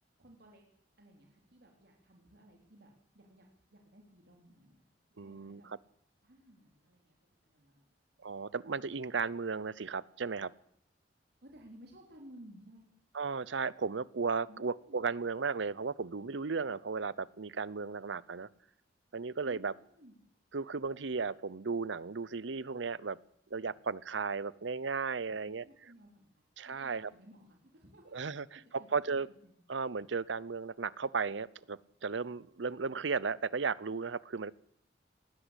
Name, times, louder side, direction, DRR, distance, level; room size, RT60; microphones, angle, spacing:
voice 1, 0.2-0.7 1.0-4.8 5.2-5.7 6.2-7.2 7.4-7.9 11.4-12.9 14.5-15.0 19.4-20.1 23.6-23.8 25.3-29.6, equal, 60° right, 1 dB, 3.5 m, -58 dB
voice 2, 5.2-5.6 8.2-10.5 13.1-18.5 19.1-19.7 20.5-23.2 23.5-25.7 26.6-27.1 28.1-28.4 28.9-29.3 29.7-34.5, right 5 dB, 80° right, 21 dB, 0.7 m, -35 dB
19.5 x 17.0 x 8.3 m, 0.69 s
head